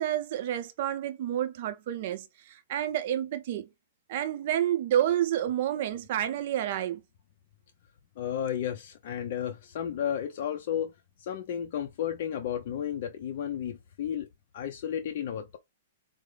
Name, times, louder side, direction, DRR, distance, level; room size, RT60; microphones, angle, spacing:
voice 1, 0.0-3.7 4.1-7.0, right 11 dB, 50° right, 0.5 m, -29 dB
voice 2, 8.2-10.9 11.2-14.3 14.5-15.6, left 9 dB, 55° left, 0.5 m, -33 dB
4.6 x 2.0 x 3.3 m
hypercardioid pair, 155°, 0 cm